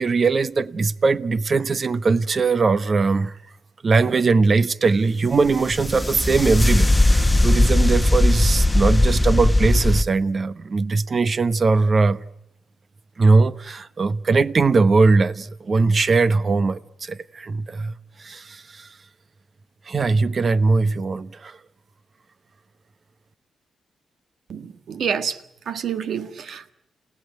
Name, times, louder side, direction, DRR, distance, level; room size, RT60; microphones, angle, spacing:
voice 1, 0.0-3.4 3.8-12.3 13.2-19.0 19.8-21.6, right 4 dB, 50° right, 1.1 m, -20 dB
sound 1, 5.4-10.0, left 1 dB, 15° left, 1.2 m, -18 dB
voice 2, 24.5-25.4 25.7-26.7, right 7 dB, 70° right, 1.6 m, -28 dB
29.5 x 18.0 x 9.2 m
supercardioid pair, 55°, 0 cm